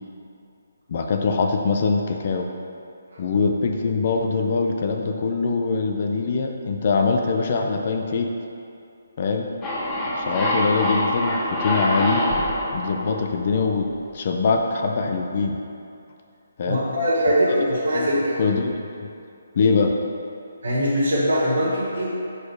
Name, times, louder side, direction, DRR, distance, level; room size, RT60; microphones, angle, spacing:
voice 1, 0.9-2.5 3.2-8.3 9.2-9.5 10.2-12.2 12.7-13.9 14.1-15.6 16.6-16.8 17.7-18.1 18.4-19.1 19.6-19.9, left 4 dB, 45° left, 3 dB, 0.5 m, -23 dB
sound 1, 9.6-14.1, left 1 dB, 20° left, 0.9 m, -25 dB
voice 2, 16.7-18.4 20.6-22.1, equal, 70° right, -7 dB, 1.2 m, -21 dB
5.0 x 4.2 x 4.8 m, 2.6 s
figure-of-eight pair, 150°, 0 cm